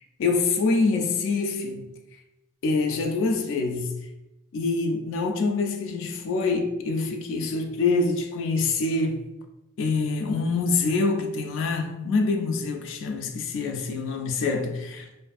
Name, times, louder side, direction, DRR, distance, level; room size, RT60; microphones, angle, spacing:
voice 1, 0.2-1.9 2.6-3.9 4.5-9.3 9.8-15.1, left 3 dB, 60° left, 0.3 m, -25 dB
2.5 x 2.5 x 2.3 m
head